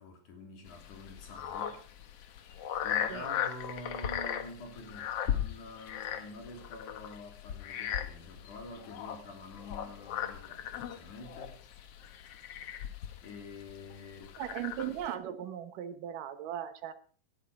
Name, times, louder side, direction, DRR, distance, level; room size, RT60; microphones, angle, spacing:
voice 1, 0.0-2.1 2.8-11.6 13.2-14.4, left 2 dB, 55° left, 3 dB, 4.5 m, -47 dB
sound 1, 0.7-15.1, left 9 dB, 85° left, 1.3 m, -38 dB
voice 2, 14.4-16.9, right 10 dB, 65° right, 10 dB, 2.5 m, -38 dB
18.5 x 11.5 x 4.8 m, 0.42 s
omnidirectional pair, 4.5 m